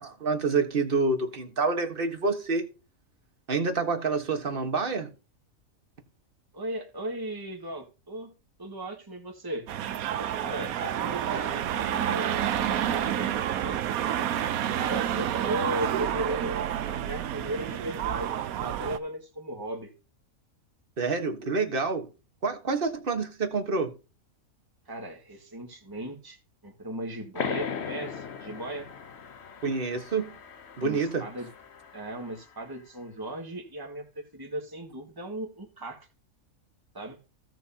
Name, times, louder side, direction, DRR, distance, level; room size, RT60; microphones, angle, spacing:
voice 1, 0.0-2.6 3.5-5.1 21.0-22.1 22.4-23.9 29.6-30.4 30.8-31.3, right 4 dB, 40° right, 1.5 m, -27 dB
voice 2, 6.5-8.3 8.6-9.7 10.2-13.8 14.8-18.3 18.6-19.9 24.8-26.4 26.6-28.9 30.8-31.5 31.9-36.1 36.9-37.2, right 1 dB, 15° right, 1.6 m, -37 dB
sound 1, 9.7-19.0, right 10 dB, 85° right, 1.1 m, -29 dB
sound 2, 27.4-32.6, left 7 dB, 55° left, 1.0 m, -38 dB
16.5 x 6.1 x 2.8 m
omnidirectional pair, 1.5 m